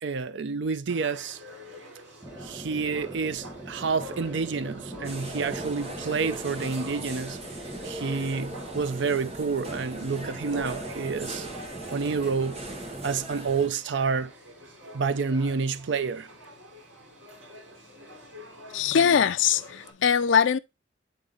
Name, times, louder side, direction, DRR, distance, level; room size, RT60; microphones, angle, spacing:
voice 1, 0.0-1.4 2.4-7.4 7.8-11.5 11.9-12.6 13.0-14.3 14.9-16.3, right 5 dB, 65° right, 0.5 m, -29 dB
sound 1, 0.9-19.9, equal, 90° right, 4.0 m, -48 dB
sound 2, 2.2-13.3, right 1 dB, 15° right, 1.3 m, -42 dB
sound 3, 5.0-13.7, right 1 dB, 30° right, 1.4 m, -39 dB
voice 2, 18.7-20.6, left 7 dB, 75° left, 0.4 m, -22 dB
9.2 x 3.7 x 3.8 m
head